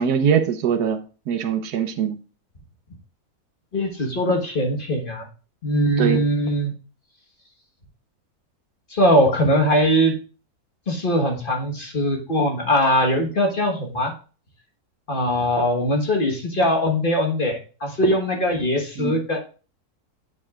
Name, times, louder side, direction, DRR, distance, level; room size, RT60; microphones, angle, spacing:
voice 1, 0.0-2.2 6.0-6.2 19.0-19.2, right 7 dB, 80° right, 8 dB, 1.4 m, -22 dB
voice 2, 3.7-5.3 5.6-6.7 8.9-10.1 10.9-14.1 15.1-19.4, equal, 35° left, 1 dB, 1.4 m, -21 dB
8.5 x 7.1 x 2.4 m, 0.36 s
omnidirectional pair, 1.7 m